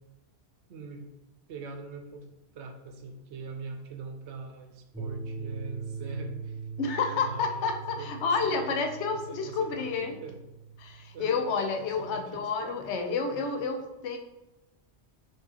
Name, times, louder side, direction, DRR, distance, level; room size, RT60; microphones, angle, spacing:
voice 1, 0.7-1.1 1.5-2.3 2.5-6.6 7.1-8.8 9.1-10.4 11.1-11.4 12.0-12.8, right 4 dB, 90° right, 4 dB, 0.9 m, -42 dB
sound 1, 4.9-12.0, right 5 dB, 5° right, 0.9 m, -41 dB
voice 2, 6.8-10.2 10.8-14.2, left 4 dB, 90° left, 5 dB, 0.9 m, -30 dB
4.4 x 2.8 x 2.8 m, 0.99 s
omnidirectional pair, 1.1 m